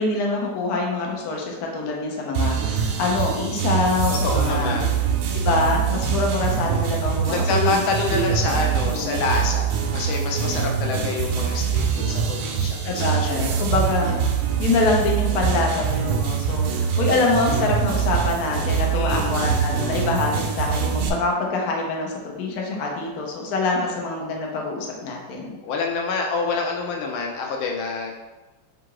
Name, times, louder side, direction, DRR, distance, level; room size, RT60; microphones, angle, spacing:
voice 1, 0.0-4.8 5.3-7.8 8.1-8.5 8.8-9.1 12.8-14.1 14.6-25.5, left 3 dB, 60° left, -1 dB, 1.1 m, -25 dB
sound 1, 2.3-21.1, right 7 dB, 85° right, 1.4 m, -24 dB
voice 2, 4.1-5.0 7.3-13.6 18.9-19.5 25.6-28.2, left 4 dB, 80° left, 1 dB, 1.4 m, -27 dB
3.8 x 2.4 x 4.5 m, 1.1 s
omnidirectional pair, 2.2 m